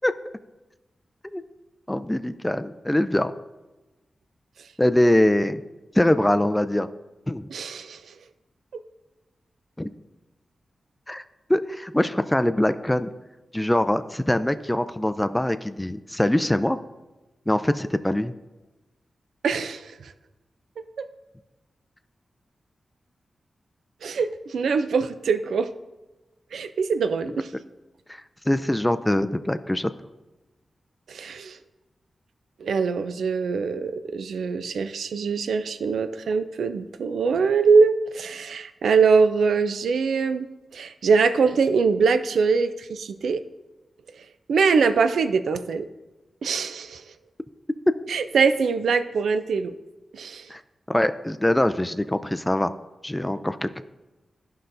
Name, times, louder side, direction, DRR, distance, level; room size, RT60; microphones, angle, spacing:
voice 1, 1.9-3.3 4.8-5.6 6.0-6.9 7.3-7.5 9.8-9.9 11.1-11.2 11.5-13.1 13.5-16.8 17.5-18.3 28.5-29.9 50.5-50.6 50.9-52.7 53.0-53.8, left 1 dB, 10° left, 11 dB, 0.4 m, -23 dB
voice 2, 7.5-8.0 19.4-19.9 21.0-21.1 24.0-25.7 26.5-27.5 31.1-31.6 32.6-40.5 40.7-43.4 44.5-45.9 46.4-47.0 48.1-49.7 50.1-50.4, right 5 dB, 85° right, 11 dB, 0.4 m, -23 dB
11.5 x 5.5 x 2.6 m, 1.1 s
cardioid pair, 50°, 0 cm